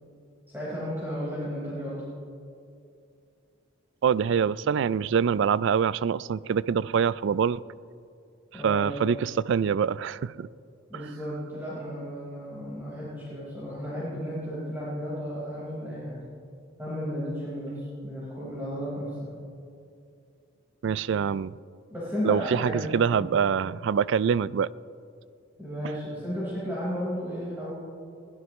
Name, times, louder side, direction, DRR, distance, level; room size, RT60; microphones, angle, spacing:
voice 1, 0.5-2.1 8.5-9.0 10.9-16.2 16.8-19.3 21.9-22.9 23.2-23.3 25.6-27.7, equal, 10° right, 4.7 m, -33 dB
voice 2, 4.0-7.6 8.6-10.5 20.8-21.5 22.2-24.7, right 7 dB, 65° right, 0.3 m, -25 dB
22.0 x 16.5 x 3.2 m
head